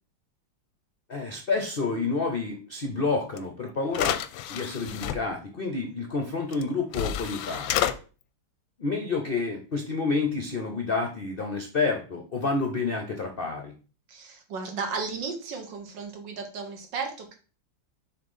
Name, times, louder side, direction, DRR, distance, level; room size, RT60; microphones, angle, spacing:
voice 1, 1.1-4.2 4.5-7.8 8.8-13.7, left 3 dB, 55° left, 4 dB, 0.6 m, -29 dB
sound 1, 3.4-3.5 3.9-5.2 6.5-6.6 6.9-7.9, left 11 dB, 90° left, 1.3 m, -29 dB
voice 2, 14.1-17.4, right 5 dB, 75° right, 4 dB, 1.8 m, -34 dB
6.6 x 3.2 x 5.5 m, 0.36 s
omnidirectional pair, 2.0 m